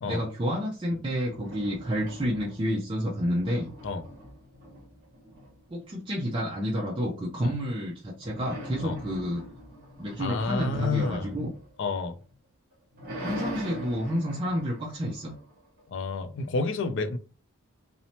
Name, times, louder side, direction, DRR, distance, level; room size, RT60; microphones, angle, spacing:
voice 1, 0.1-3.7 5.7-9.4 10.0-11.5 13.2-15.3, equal, 25° right, 0.4 m, -30 dB
sound 1, 1.1-2.8 3.1-5.9 8.2-12.3 12.7-15.8, equal, 45° right, 1.1 m, -42 dB
voice 2, 10.2-11.3 11.8-12.2 15.9-17.2, left 4 dB, 60° left, 0.4 m, -30 dB
2.7 x 2.0 x 2.9 m
head